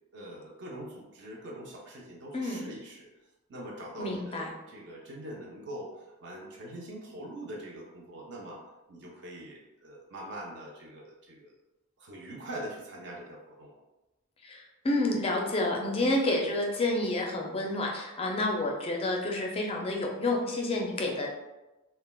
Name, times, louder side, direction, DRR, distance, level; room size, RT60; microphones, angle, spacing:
voice 1, 0.1-3.1 3.5-8.6 8.9-11.5 12.0-13.8, right 1 dB, 55° right, -2 dB, 0.5 m, -43 dB
voice 2, 2.3-2.6 4.0-4.5 14.4-21.3, left 2 dB, 25° left, 0 dB, 0.4 m, -29 dB
3.2 x 2.1 x 2.2 m, 1.0 s
head